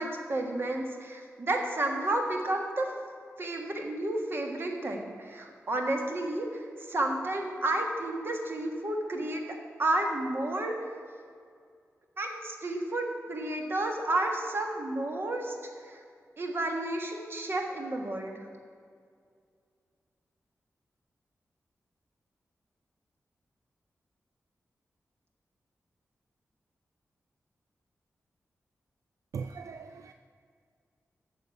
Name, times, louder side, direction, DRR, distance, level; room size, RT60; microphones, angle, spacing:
voice 1, 0.0-2.9 3.4-9.4 9.8-10.7 12.2-15.5 15.8-16.0 16.4-18.3, right 1 dB, 45° right, 2 dB, 1.6 m, -31 dB
voice 2, 29.3-30.1, right 5 dB, 75° right, 9 dB, 0.4 m, -39 dB
9.3 x 6.8 x 8.2 m, 2.2 s
wide cardioid pair, 140°, 5 cm